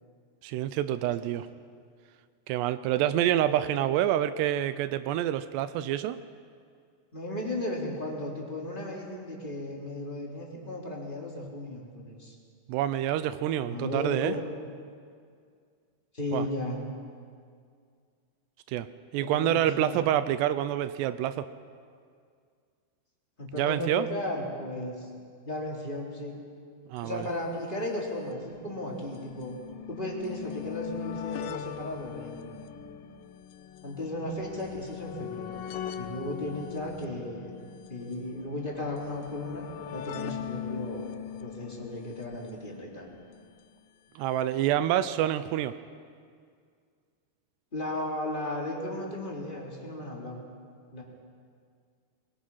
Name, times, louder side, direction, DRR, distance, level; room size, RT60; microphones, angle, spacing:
voice 1, 0.4-1.5 2.5-6.2 12.7-14.4 16.3-16.4 18.7-18.9 19.1-21.5 23.5-24.1 26.9-27.3 44.2-45.7, right 12 dB, 85° right, 12 dB, 2.8 m, -27 dB
voice 2, 7.1-12.4 13.7-14.5 16.1-16.8 19.2-20.2 23.4-25.1 25.4-26.4 27.0-29.5 29.9-32.8 33.8-35.6 36.0-41.1 41.4-43.1 47.7-50.4 50.9-51.0, left 1 dB, 15° left, -3 dB, 3.2 m, -35 dB
sound 1, 27.0-27.1 27.2-27.3 28.2-43.4 44.4-44.5 44.7-44.8, left 9 dB, 75° left, 2.0 m, -41 dB
26.5 x 22.0 x 5.7 m, 2.2 s
omnidirectional pair, 4.7 m